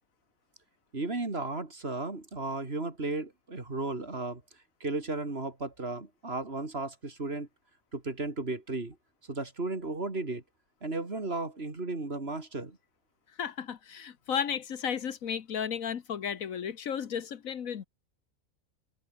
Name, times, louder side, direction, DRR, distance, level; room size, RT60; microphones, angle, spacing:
voice 1, 0.9-4.4 4.8-7.5 7.9-9.0 9.3-10.4 10.8-12.8, right 2 dB, 45° right, 3.3 m, -34 dB
voice 2, 13.4-17.8, left 8 dB, 75° left, 1.5 m, -34 dB
omnidirectional pair, 1.5 m